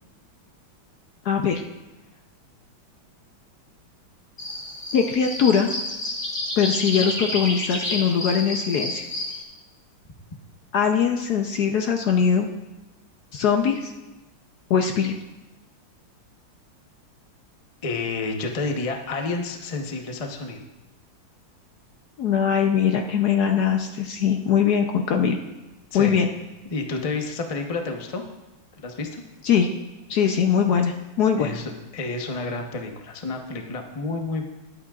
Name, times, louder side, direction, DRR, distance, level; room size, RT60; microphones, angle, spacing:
voice 1, 1.2-1.6 4.9-5.7 6.6-9.0 10.7-12.5 13.3-13.9 14.7-15.1 22.2-25.4 25.9-26.3 29.4-29.7 30.1-31.5, left 7 dB, 65° left, 4 dB, 1.0 m, -21 dB
sound 1, 4.4-9.4, left 1 dB, 20° left, 1.2 m, -30 dB
voice 2, 17.8-20.6 25.9-26.2 26.6-28.2 28.8-29.2 31.4-34.5, left 3 dB, 45° left, 3 dB, 0.4 m, -30 dB
21.0 x 8.6 x 2.4 m, 1.1 s
omnidirectional pair, 2.3 m